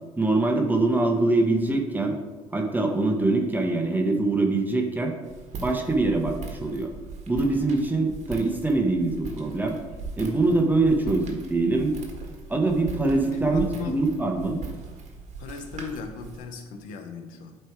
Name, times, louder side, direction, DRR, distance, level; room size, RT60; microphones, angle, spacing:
voice 1, 0.2-2.2 2.5-5.1 5.6-6.9 7.3-9.8 10.2-12.0 12.5-14.7, right 2 dB, 15° right, 2 dB, 1.1 m, -23 dB
Walk footsteps, 5.2-16.4, right 4 dB, 60° right, 1.5 m, -39 dB
voice 2, 13.3-14.0 15.4-17.6, left 5 dB, 75° left, 5 dB, 1.0 m, -37 dB
9.1 x 3.4 x 4.7 m, 1.3 s
supercardioid pair, 75°, 14 cm